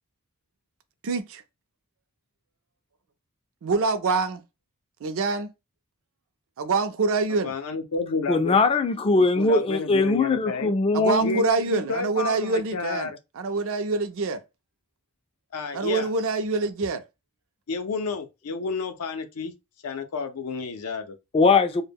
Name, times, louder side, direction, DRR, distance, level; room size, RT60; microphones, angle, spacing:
voice 1, 1.0-1.4 3.6-4.4 5.0-5.5 6.6-7.5 10.9-14.4 15.7-17.0, right 3 dB, 65° right, 0.4 m, -25 dB
voice 2, 7.4-8.6 9.4-10.7 11.2-13.2 15.5-16.1 17.7-19.5 19.8-21.2, left 4 dB, 85° left, 0.5 m, -31 dB
voice 3, 8.3-11.4 21.3-21.8, left 3 dB, 25° left, 0.3 m, -21 dB
2.1 x 2.1 x 3.4 m
head